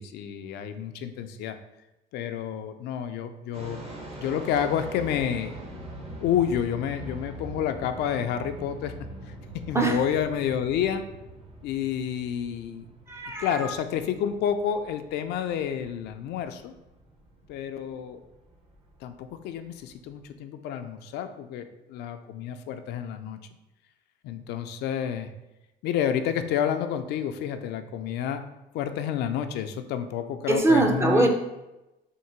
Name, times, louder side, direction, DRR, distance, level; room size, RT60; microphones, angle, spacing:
voice 1, 0.0-1.6 2.1-3.8 4.2-5.6 6.2-8.9 9.5-11.1 11.6-12.9 13.4-16.7 17.5-18.2 19.0-23.4 24.2-25.3 25.8-28.5 28.7-31.3, left 9 dB, 75° left, 8 dB, 0.4 m, -29 dB
sound 1, 3.5-20.3, right 1 dB, 35° right, 0.9 m, -43 dB
voice 2, 13.1-13.7 30.5-31.3, right 2 dB, 15° right, 3 dB, 0.5 m, -22 dB
3.7 x 2.6 x 4.3 m, 0.97 s
cardioid pair, 110°, 17 cm